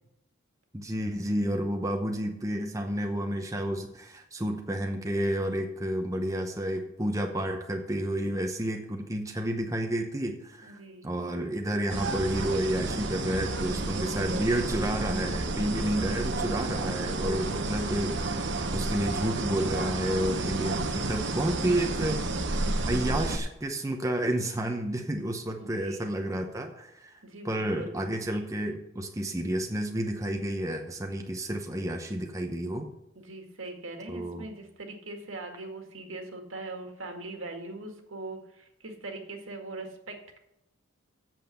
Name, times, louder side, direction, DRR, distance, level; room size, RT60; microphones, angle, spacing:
voice 1, 0.7-22.2 22.8-32.9 34.1-34.5, right 1 dB, 15° right, 3 dB, 0.8 m, -30 dB
voice 2, 10.6-11.1 15.9-16.7 25.6-26.1 27.2-28.0 33.2-40.4, right 2 dB, 75° right, 3 dB, 2.0 m, -41 dB
sound 1, 11.9-23.4, right 2 dB, 60° right, 1.0 m, -31 dB
8.2 x 7.3 x 6.8 m, 0.88 s
head